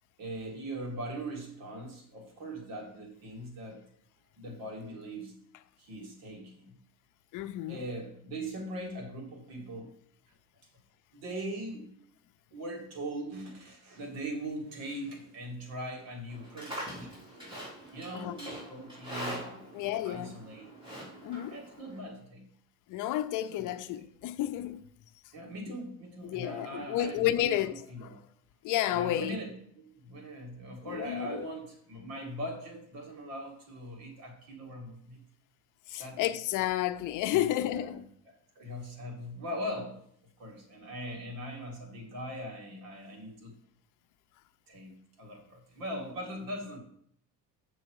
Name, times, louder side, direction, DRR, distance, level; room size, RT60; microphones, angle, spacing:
voice 1, 0.2-3.8 4.4-5.3 5.8-6.7 7.7-9.9 11.1-11.9 12.5-17.2 17.9-20.7 21.5-22.5 23.5-24.0 25.3-28.2 28.9-35.2 35.9-36.2 37.3-40.0 40.4-43.5 44.7-44.9 45.2-46.8, right 1 dB, 70° right, 2.5 m, -41 dB
voice 2, 7.3-7.8 18.1-18.4 19.7-20.4 21.2-21.6 22.9-24.8 25.7-25.8 26.2-28.2 28.6-29.4 30.9-31.4 35.9-38.0, left 13 dB, 60° left, 0.6 m, -31 dB
Livestock farm animals working animals, 16.3-22.0, equal, 15° right, 4.0 m, -43 dB
7.6 x 6.2 x 4.7 m
cardioid pair, 145°, 36 cm